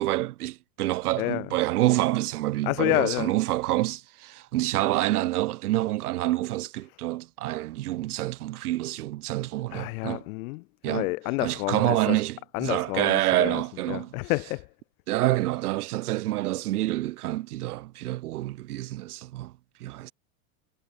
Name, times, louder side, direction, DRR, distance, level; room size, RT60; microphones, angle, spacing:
voice 1, 0.0-10.2 10.8-11.1 11.4-14.1 15.1-19.5 19.8-20.1, right 16 dB, 90° right, 2.9 m, -27 dB
voice 2, 2.6-3.3 9.7-12.2 12.5-13.6 13.9-14.6, left 25 dB, 70° left, 1.8 m, -29 dB
supercardioid pair, 125°, 44 cm